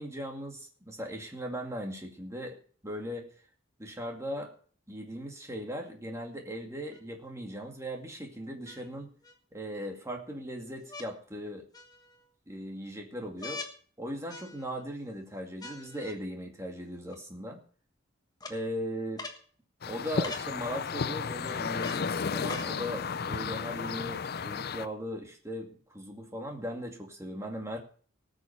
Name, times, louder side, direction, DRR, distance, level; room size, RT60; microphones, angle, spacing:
voice 1, 0.0-2.6 2.8-3.3 3.8-4.5 4.9-9.1 9.5-11.6 12.5-13.6 14.0-17.6 18.5-19.2 19.9-27.8, equal, 15° right, 2 dB, 2.2 m, -38 dB
sound 1, 6.9-7.0 8.7-9.4 10.9-11.1 11.7-12.3 13.4-13.8 14.3-14.8 15.6-16.2 17.1-17.2 18.4-18.6 19.2-19.4 20.2-20.5 21.8-22.1 22.5-22.7 23.6-23.7, left 3 dB, 20° left, 1.3 m, -43 dB
sound 2, 19.8-24.9, left 5 dB, 50° left, 0.5 m, -33 dB
18.5 x 6.5 x 5.6 m, 0.43 s
head